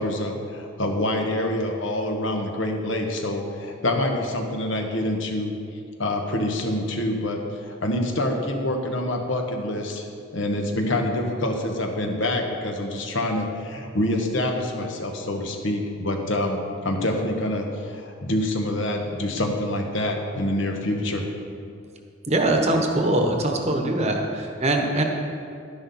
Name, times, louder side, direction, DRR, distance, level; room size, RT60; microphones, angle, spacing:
voice 1, 0.0-5.5 6.0-10.1 10.3-21.3, left 1 dB, 75° left, 3 dB, 1.3 m, -26 dB
voice 2, 22.3-25.0, right 1 dB, 35° right, 2 dB, 1.1 m, -22 dB
11.0 x 10.5 x 4.2 m, 2.4 s
head